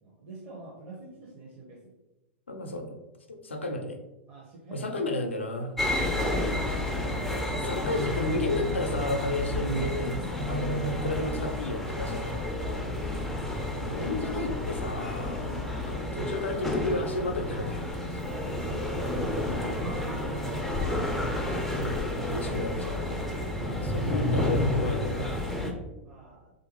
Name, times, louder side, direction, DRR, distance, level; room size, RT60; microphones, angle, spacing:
voice 1, 0.0-1.8 4.3-5.1 12.7-13.3 18.3-19.5 19.8-22.0 26.0-26.5, right 2 dB, 35° right, -5 dB, 0.8 m, -46 dB
voice 2, 2.5-2.9 3.3-4.0 4.7-5.8 7.5-10.2 10.5-12.6 13.8-18.2 21.7-22.0 22.2-23.0 23.6-25.5, left 2 dB, 75° left, 3 dB, 0.5 m, -32 dB
sound 1, 5.8-25.7, left 1 dB, 5° left, 0.4 m, -30 dB
3.3 x 2.5 x 2.9 m, 1.0 s
figure-of-eight pair, 100°, 6 cm